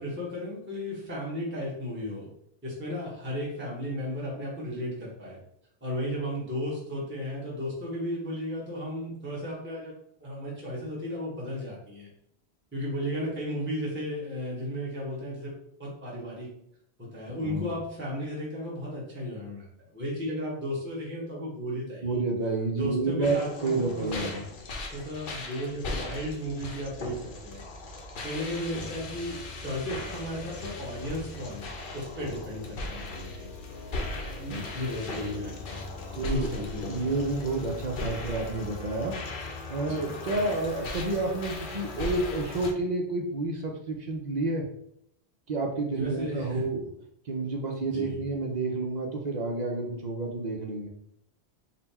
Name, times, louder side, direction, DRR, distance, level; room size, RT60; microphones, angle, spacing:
voice 1, 0.0-2.3 2.6-5.4 5.8-9.9 10.2-12.1 12.7-15.5 15.8-16.5 17.0-19.7 19.9-22.2 22.7-24.4 24.7-27.6 28.2-33.5 34.4-35.8 36.2-37.3 39.8-40.1 45.9-46.6 47.9-48.2, equal, 10° right, -6 dB, 1.1 m, -34 dB
voice 2, 17.4-17.7 22.0-24.5 34.5-34.6 36.1-36.5 36.8-39.2 39.7-44.7 45.5-46.8 47.3-50.9, right 3 dB, 50° right, 1 dB, 0.6 m, -30 dB
sound 1, 23.2-42.7, left 2 dB, 55° left, 0.7 m, -38 dB
4.0 x 2.2 x 4.1 m, 0.73 s
omnidirectional pair, 1.1 m